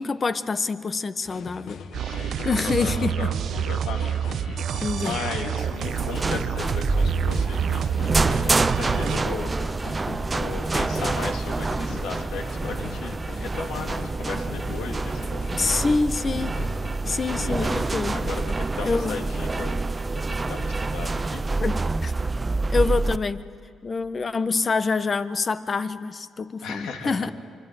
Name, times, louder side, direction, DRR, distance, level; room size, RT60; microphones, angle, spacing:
voice 1, 0.0-1.8 2.4-3.2 4.8-5.2 15.5-16.6 17.1-18.1 18.8-19.2 21.6-22.1 22.7-23.4 23.8-27.3, left 4 dB, 35° left, 12 dB, 1.2 m, -26 dB
sound 1, 1.3-18.3, left 6 dB, 70° left, 1.5 m, -40 dB
sound 2, 1.9-9.2, right 9 dB, 65° right, 0.6 m, -28 dB
voice 2, 2.0-3.3 3.6-4.3 5.0-7.9 8.1-9.5 10.3-15.8 17.4-19.9 20.3-21.4 26.6-27.3, left 5 dB, 85° left, 3 dB, 3.2 m, -36 dB
sound 3, 5.6-23.2, right 3 dB, 25° right, 0.6 m, -27 dB
24.5 x 24.5 x 9.4 m, 2.2 s
cardioid pair, 90°, 0 cm